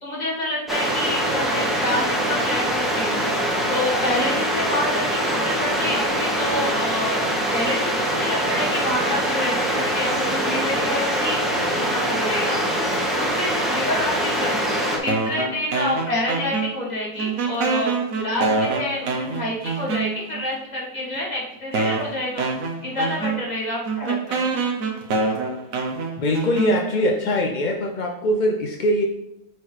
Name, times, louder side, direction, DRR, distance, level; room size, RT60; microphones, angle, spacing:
voice 1, 0.0-3.3 3.7-7.2 7.5-12.6 13.1-17.9 18.2-22.4 22.8-24.5, left 1 dB, 30° left, -4 dB, 1.7 m, -28 dB
sound 1, 0.7-15.0, right 1 dB, ahead, 1.2 m, -23 dB
sound 2, 15.1-16.9 17.2-20.4 21.1-21.2 21.7-27.1, right 4 dB, 65° right, 1.3 m, -26 dB
voice 2, 26.2-29.0, left 1 dB, 60° left, 2 dB, 0.4 m, -22 dB
9.4 x 4.5 x 3.3 m, 0.83 s
omnidirectional pair, 1.6 m